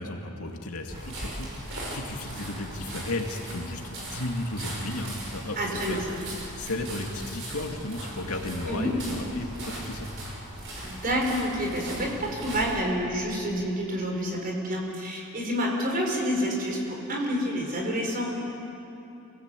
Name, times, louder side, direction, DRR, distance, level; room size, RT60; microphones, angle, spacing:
voice 1, 0.0-6.0 6.6-10.1, left 2 dB, 75° left, 2 dB, 2.4 m, -34 dB
sound 1, 0.9-12.8, right 1 dB, 60° right, 5.8 m, -39 dB
voice 2, 5.6-6.2 8.7-8.9 10.8-18.3, equal, 40° right, -1 dB, 4.9 m, -28 dB
27.0 x 18.5 x 8.4 m, 2.8 s
head